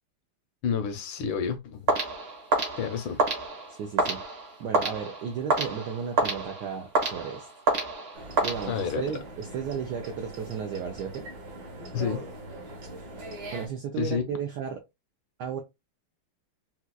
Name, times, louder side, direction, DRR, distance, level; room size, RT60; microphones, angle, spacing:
voice 1, 0.6-1.9 2.8-3.2 8.7-9.0 11.9-12.2 14.0-14.2, left 7 dB, 75° left, 1.2 m, -29 dB
sound 1, 1.9-9.1, right 3 dB, 40° right, 1.0 m, -29 dB
voice 2, 3.8-4.2 4.6-7.5 8.4-11.2 13.5-14.8 15.4-15.6, right 7 dB, 80° right, 0.9 m, -34 dB
sound 2, 8.1-13.7, right 1 dB, 55° right, 1.5 m, -41 dB
4.2 x 2.3 x 2.2 m
omnidirectional pair, 2.4 m